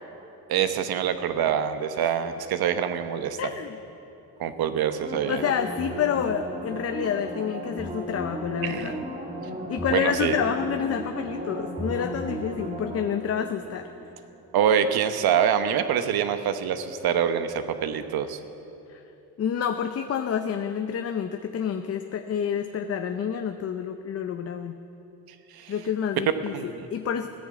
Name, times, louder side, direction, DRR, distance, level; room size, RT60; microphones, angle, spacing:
voice 1, 0.5-3.4 4.4-5.4 8.6-8.9 9.9-10.4 14.5-18.4 25.5-25.7 26.5-26.9, right 8 dB, 75° right, 9 dB, 1.0 m, -25 dB
voice 2, 3.4-3.8 5.3-9.0 9.7-13.9 18.9-19.0 19.4-24.8 25.7-27.3, left 8 dB, 40° left, 7 dB, 0.6 m, -28 dB
sound 1, 5.0-14.4 14.8-14.9, right 1 dB, 20° right, 2.1 m, -35 dB
16.0 x 10.0 x 7.7 m, 2.8 s
cardioid pair, 130°, 37 cm